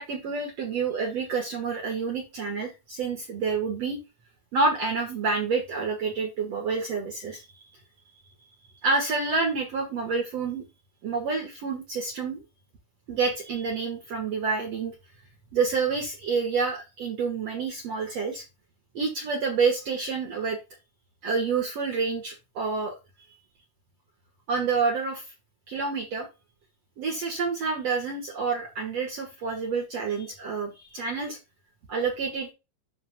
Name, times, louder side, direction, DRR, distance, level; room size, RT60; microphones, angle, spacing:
voice 1, 0.0-4.0 4.5-7.7 8.8-10.6 11.0-12.4 13.1-14.9 15.5-18.4 18.9-20.6 21.2-23.0 24.5-25.3 25.7-26.3 27.0-31.4 31.9-32.5, right 4 dB, 55° right, 1 dB, 2.1 m, -28 dB
13.0 x 4.4 x 2.2 m, 0.25 s
omnidirectional pair, 4.5 m